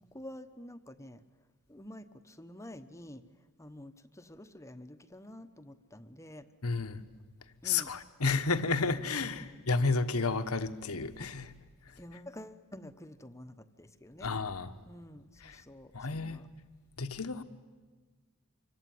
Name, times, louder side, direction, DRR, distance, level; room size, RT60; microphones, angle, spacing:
voice 1, 0.1-1.2 1.7-3.2 3.6-6.5 7.6-7.9 9.3-10.1 12.0-14.3 14.8-16.5, left 1 dB, 15° left, 1.1 m, -49 dB
voice 2, 6.6-7.0 7.6-11.5 14.2-14.7 15.4-15.6 15.9-16.4 17.0-17.4, left 4 dB, 75° left, 1.4 m, -31 dB
26.0 x 24.0 x 9.5 m
head